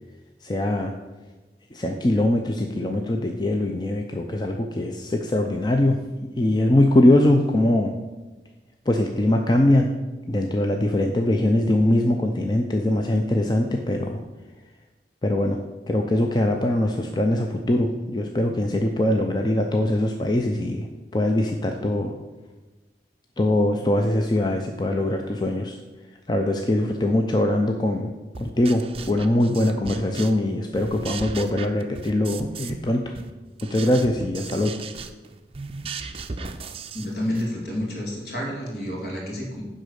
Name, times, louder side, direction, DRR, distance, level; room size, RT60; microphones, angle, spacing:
voice 1, 0.4-0.9 1.7-6.0 6.4-7.9 8.9-9.9 10.3-14.2 15.2-15.6 15.9-20.9 21.1-22.1 23.4-25.8 26.3-28.1 28.4-33.1 33.7-34.8, left 1 dB, 25° left, 3 dB, 0.5 m, -22 dB
sound 1, 28.3-30.5 30.7-32.9 33.1-37.5, right 4 dB, 30° right, 0.5 m, -36 dB
voice 2, 36.9-39.6, left 1 dB, 60° left, -2 dB, 2.5 m, -29 dB
10.0 x 3.8 x 6.4 m, 1.2 s
head